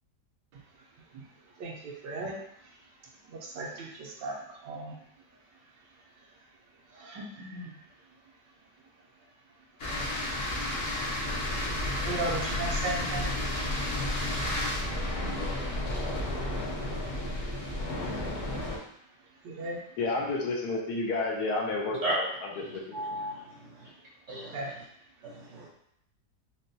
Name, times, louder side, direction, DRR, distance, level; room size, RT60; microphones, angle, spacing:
voice 1, 1.6-2.4 3.3-5.0 6.9-7.8 12.0-13.3 19.4-19.8 24.5-24.7, right 2 dB, 80° right, -1 dB, 1.3 m, -36 dB
sound 1, 9.8-18.8, left 1 dB, 55° left, 0.7 m, -32 dB
voice 2, 20.0-23.2, left 3 dB, 70° left, -2 dB, 1.1 m, -31 dB
voice 3, 22.9-23.9 24.3-24.7 25.2-25.7, right 1 dB, 55° right, -6 dB, 0.9 m, -35 dB
4.1 x 2.2 x 2.6 m, 0.72 s
omnidirectional pair, 1.9 m